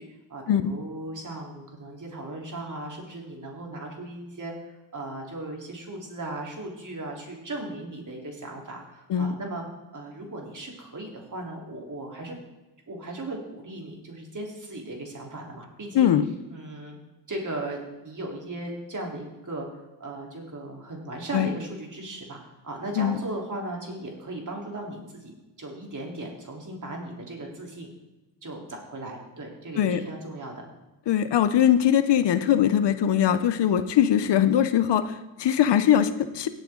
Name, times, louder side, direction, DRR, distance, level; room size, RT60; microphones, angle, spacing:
voice 1, 0.0-9.6 9.9-12.3 12.9-16.1 16.5-17.0 17.3-27.9 28.4-30.5, right 1 dB, 40° right, -1 dB, 3.8 m, -37 dB
voice 2, 15.9-16.2 21.3-21.5 23.0-23.2 29.8-30.0 31.1-36.5, left 10 dB, 65° left, 12 dB, 0.8 m, -21 dB
17.0 x 7.6 x 3.9 m, 1.1 s
supercardioid pair, 55°, 45 cm